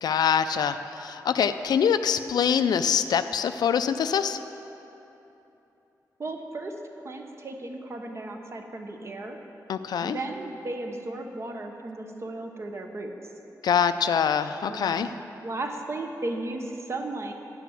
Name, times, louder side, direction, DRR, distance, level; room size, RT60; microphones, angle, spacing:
voice 1, 0.0-4.4 9.7-10.2 13.6-15.1, left 7 dB, 85° left, 11 dB, 0.4 m, -24 dB
voice 2, 6.2-6.7 7.0-9.4 10.0-13.1 14.7-17.3, right 2 dB, 40° right, 4 dB, 0.9 m, -35 dB
10.5 x 6.0 x 7.1 m, 3.0 s
wide cardioid pair, 115°, 7 cm